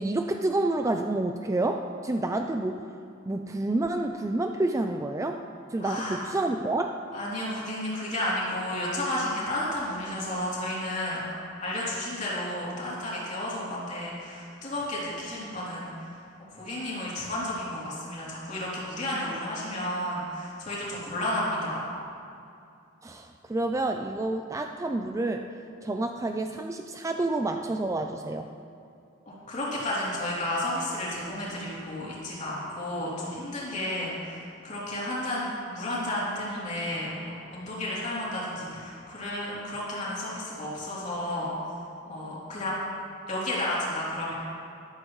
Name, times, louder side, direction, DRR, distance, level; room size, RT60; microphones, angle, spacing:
voice 1, 0.0-2.9 3.3-5.4 5.7-7.0 23.0-28.5, right 2 dB, 15° right, 5 dB, 0.3 m, -29 dB
voice 2, 5.8-6.3 7.1-11.2 11.6-16.2 16.5-21.8 29.3-41.5 42.0-42.8 43.3-44.3, left 1 dB, 35° left, -7 dB, 3.1 m, -32 dB
13.0 x 12.0 x 3.1 m, 2.5 s
head